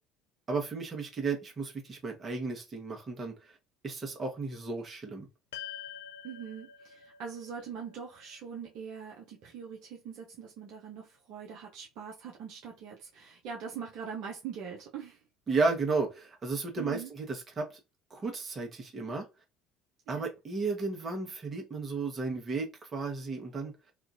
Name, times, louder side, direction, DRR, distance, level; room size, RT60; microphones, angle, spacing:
voice 1, 0.5-3.6 3.8-5.3 15.5-17.7 18.1-19.3 20.1-23.7, right 4 dB, 35° right, 1.2 m, -33 dB
sound 1, 5.5-10.0, left 10 dB, 75° left, 0.4 m, -48 dB
voice 2, 6.2-15.2 16.7-17.1 20.1-20.3, right 7 dB, 60° right, 0.7 m, -42 dB
2.9 x 2.4 x 2.6 m
hypercardioid pair, 60°, 0 cm